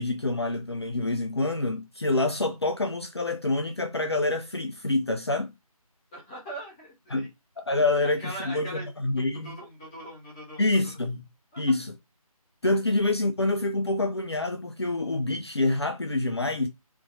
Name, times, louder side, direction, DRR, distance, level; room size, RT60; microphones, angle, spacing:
voice 1, 0.0-5.5 7.1-7.3 7.6-9.5 10.6-11.2 11.6-11.9 12.6-16.7, left 2 dB, 45° left, 0.6 m, -27 dB
voice 2, 6.1-7.3 8.0-8.9 9.1-10.8 11.5-11.6, right 1 dB, 10° left, 1.2 m, -41 dB
5.8 x 2.8 x 2.6 m
figure-of-eight pair, 160°, 19 cm